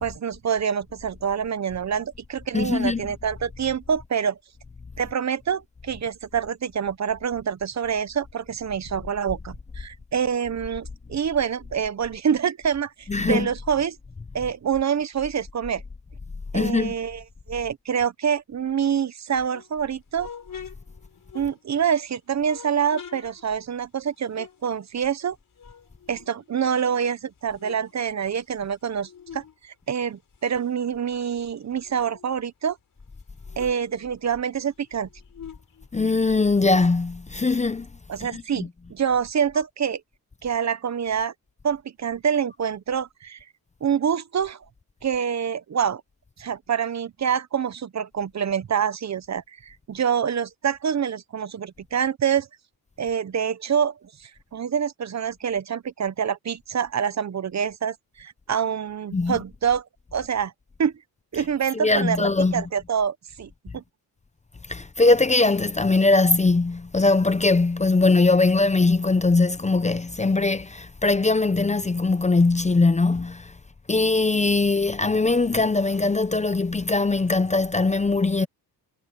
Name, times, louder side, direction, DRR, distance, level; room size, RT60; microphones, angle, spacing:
voice 1, 0.0-4.4 5.0-14.0 14.3-15.8 16.5-20.3 21.3-25.4 26.1-32.8 33.6-35.1 38.1-40.0 40.4-41.3 41.6-43.4 43.8-44.6 45.0-46.0 46.4-52.5 53.0-59.8 60.1-60.5 60.8-60.9 61.3-63.8, right 7 dB, 40° right, 1.0 m, -26 dB
voice 2, 2.5-3.0 13.1-13.5 16.5-16.9 35.9-37.9 38.2-38.7 59.1-59.4 61.3-61.5 61.7-62.7 64.7-73.5 73.9-78.5, left 3 dB, 15° left, 0.7 m, -21 dB
sound 1, 19.3-22.0 22.4-25.3 25.6-26.9 27.3-29.6 29.9-32.4 32.8-32.9 33.1-36.5, left 7 dB, 50° left, 5.4 m, -46 dB
cardioid pair, 105°, 40 cm